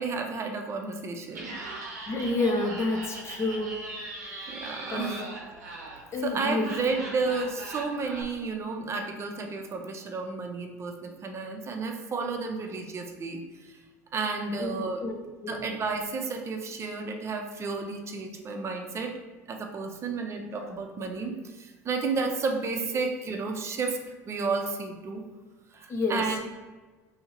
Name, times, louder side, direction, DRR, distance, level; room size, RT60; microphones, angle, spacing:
voice 1, 0.0-1.6 4.5-5.2 6.2-13.8 14.1-15.0 15.5-19.1 19.5-24.0 24.3-25.2 25.7-26.4, right 4 dB, 30° right, 3 dB, 0.6 m, -32 dB
Laughter, 1.3-8.2, right 2 dB, 80° right, 0.7 m, -40 dB
voice 2, 2.1-3.8 4.9-5.3 6.1-6.7 14.6-15.7 25.9-26.4, left 2 dB, 30° left, 2 dB, 0.7 m, -29 dB
2.8 x 2.7 x 4.3 m, 1.3 s
hypercardioid pair, 75°, 9 cm